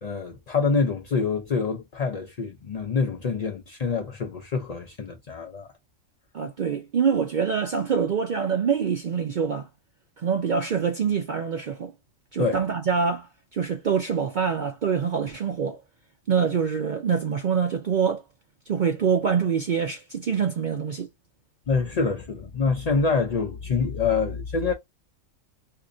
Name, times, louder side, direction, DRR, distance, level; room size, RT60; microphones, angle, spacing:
voice 1, 0.0-5.7 12.4-12.6 21.7-24.7, left 4 dB, 70° left, 0.3 m, -26 dB
voice 2, 6.3-9.7 10.2-11.9 12.3-15.8 16.3-18.2 18.7-21.1, right 6 dB, 65° right, 0.4 m, -25 dB
2.8 x 2.5 x 3.7 m
omnidirectional pair, 1.4 m